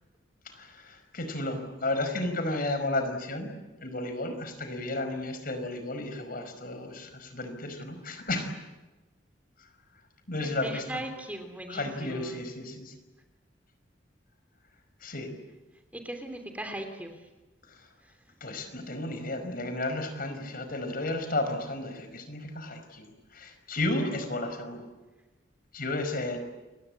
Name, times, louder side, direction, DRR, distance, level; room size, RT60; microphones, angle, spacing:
voice 1, 0.6-3.5 3.8-8.5 10.3-10.8 11.7-12.9 15.0-15.3 18.4-23.1 23.3-24.8 25.7-26.4, left 2 dB, 50° left, 8 dB, 5.1 m, -33 dB
voice 2, 10.4-12.4 15.9-17.3 18.0-18.2, right 1 dB, 10° right, 5 dB, 3.1 m, -39 dB
29.5 x 23.0 x 8.7 m, 1.1 s
head